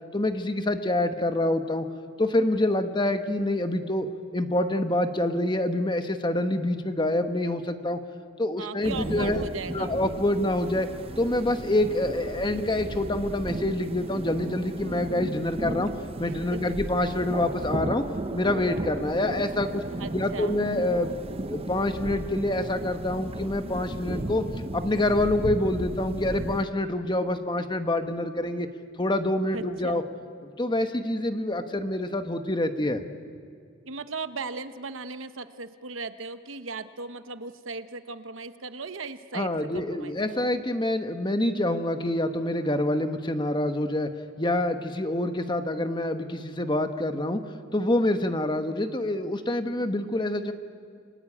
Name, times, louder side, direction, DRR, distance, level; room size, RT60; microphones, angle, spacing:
voice 1, 0.1-1.8 2.2-4.1 4.3-8.0 8.4-9.4 9.7-10.9 11.2-15.9 16.2-18.0 18.3-19.8 20.1-21.2 21.5-24.4 24.7-28.7 29.0-30.0 30.4-33.0 39.3-44.1 44.4-47.4 47.7-50.5, left 1 dB, 20° left, 8 dB, 1.2 m, -26 dB
voice 2, 8.6-9.9 16.2-16.7 20.0-20.6 29.5-30.0 33.9-40.4, right 4 dB, 75° right, 10 dB, 1.1 m, -37 dB
sound 1, 8.8-26.6, right 1 dB, 30° right, 0.7 m, -35 dB
30.0 x 21.5 x 8.7 m, 2.1 s
head